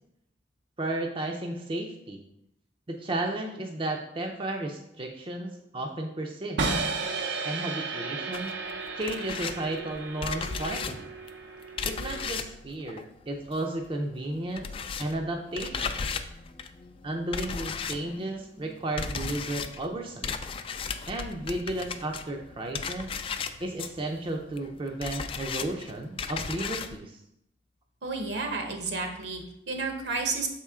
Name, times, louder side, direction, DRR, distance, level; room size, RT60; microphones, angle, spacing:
voice 1, 0.8-2.2 2.9-6.6 7.4-8.6 8.9-11.1 11.8-14.7 15.0-16.0 17.0-20.3 21.1-23.1 23.6-27.2, right 1 dB, 30° right, 2 dB, 0.5 m, -33 dB
sound 1, 6.6-12.6, right 3 dB, 90° right, 0.7 m, -34 dB
sound 2, 8.3-13.9 14.1-27.0, left 5 dB, 30° left, 0.3 m, -36 dB
voice 2, 28.0-30.5, right 3 dB, 70° right, 4 dB, 1.0 m, -31 dB
6.6 x 4.3 x 3.6 m, 0.80 s
head